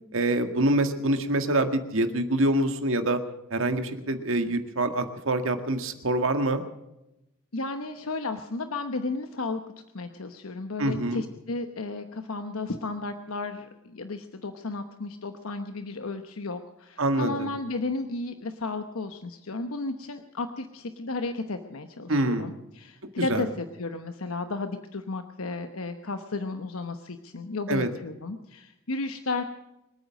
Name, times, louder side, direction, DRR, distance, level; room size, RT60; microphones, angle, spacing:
voice 1, 0.1-3.2 3.5-6.6 10.8-11.2 17.0-17.5 22.1-22.5 23.2-23.5 27.7-27.9, right 1 dB, 65° right, 7 dB, 1.9 m, -25 dB
voice 2, 7.5-9.6 9.9-29.4, left 3 dB, 75° left, 8 dB, 1.0 m, -33 dB
24.5 x 9.2 x 6.4 m, 0.91 s
head